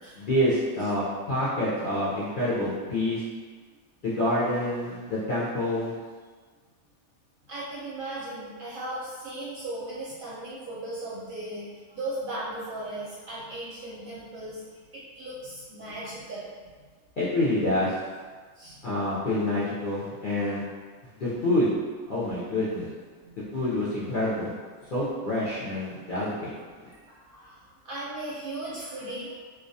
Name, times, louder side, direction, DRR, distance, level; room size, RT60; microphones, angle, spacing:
voice 1, 0.2-3.2 4.0-5.9 17.2-17.9 18.8-20.6 21.2-21.7 22.1-22.9 23.5-24.5 24.9-26.5, left 1 dB, 60° left, -10 dB, 0.5 m, -27 dB
voice 2, 7.5-14.6 15.1-16.7 18.6-18.8 23.2-23.4 26.9-29.4, right 1 dB, 55° right, -8 dB, 0.6 m, -37 dB
2.3 x 2.2 x 2.6 m, 1.5 s
omnidirectional pair, 1.3 m